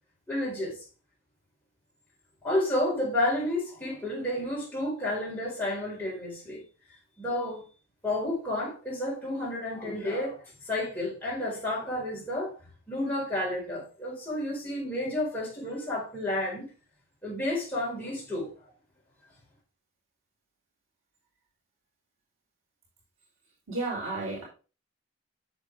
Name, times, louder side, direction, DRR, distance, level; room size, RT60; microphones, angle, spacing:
voice 1, 0.3-0.8 2.4-6.6 7.2-7.6 8.0-12.5 12.9-16.7 17.2-18.5, left 1 dB, 10° left, 4.5 m, -31 dB
voice 2, 23.7-24.4, right 2 dB, 85° right, 3.6 m, -32 dB
8.7 x 7.1 x 3.4 m
head